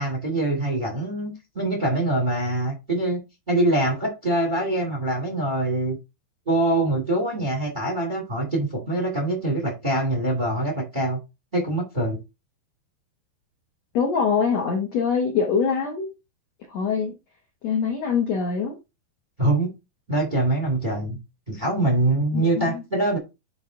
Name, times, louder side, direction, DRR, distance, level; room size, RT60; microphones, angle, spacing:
voice 1, 0.0-3.2 3.5-6.0 6.4-11.2 11.5-12.2 19.4-19.7 20.1-21.2 21.5-23.2, right 1 dB, 40° right, 0.6 m, -24 dB
voice 2, 13.9-16.1 16.7-17.1 17.6-18.8 22.3-22.8, left 6 dB, 85° left, 1.5 m, -24 dB
10.0 x 3.4 x 3.8 m
omnidirectional pair, 5.0 m